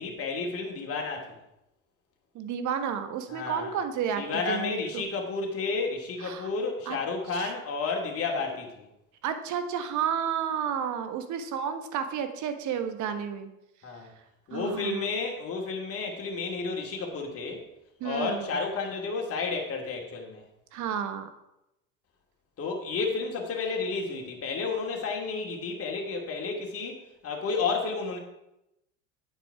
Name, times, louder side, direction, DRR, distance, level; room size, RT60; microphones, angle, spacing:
voice 1, 0.0-1.4 3.3-3.8 4.2-8.9 13.8-14.1 14.5-17.6 18.0-20.4 22.6-28.2, left 4 dB, 35° left, 1 dB, 2.8 m, -31 dB
voice 2, 2.3-5.0 6.2-6.5 6.9-7.0 7.3-7.5 9.2-13.5 14.5-15.1 18.0-18.6 20.7-21.3, right 8 dB, 45° right, 9 dB, 1.5 m, -31 dB
9.2 x 8.0 x 4.9 m, 0.87 s
hypercardioid pair, 80°, 40 cm